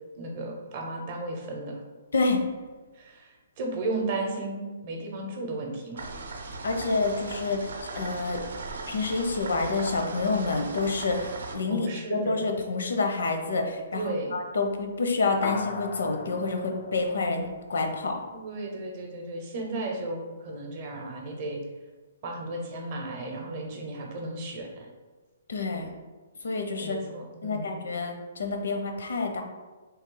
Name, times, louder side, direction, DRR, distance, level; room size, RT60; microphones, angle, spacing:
voice 1, 0.2-1.8 3.0-6.0 11.7-12.5 13.9-14.3 18.3-21.6 22.2-24.9 26.8-27.7, right 2 dB, 30° right, 1 dB, 0.6 m, -34 dB
sound 1, 6.0-11.5, right 3 dB, 70° right, 0.6 m, -38 dB
voice 2, 6.6-7.7 8.0-8.4 8.9-18.2 25.5-25.9 26.4-27.0 27.4-29.4, left 3 dB, 80° left, 4 dB, 0.6 m, -28 dB
sound 2, 15.4-18.1, left 4 dB, 40° left, 0.4 m, -38 dB
3.1 x 3.0 x 3.8 m, 1.3 s
hypercardioid pair, 175°, 0 cm